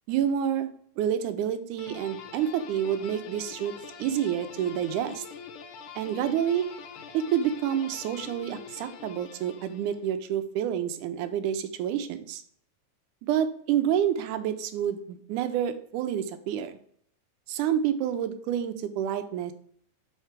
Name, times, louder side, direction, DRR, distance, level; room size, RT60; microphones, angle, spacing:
voice 1, 0.1-0.7 1.0-3.7 4.0-5.3 6.0-6.7 7.1-12.4 13.2-16.8 17.5-19.5, right 9 dB, 85° right, 9 dB, 2.1 m, -28 dB
sound 1, 1.8-10.1, left 6 dB, 85° left, 2.4 m, -44 dB
5.7 x 4.5 x 5.9 m, 0.62 s
omnidirectional pair, 3.6 m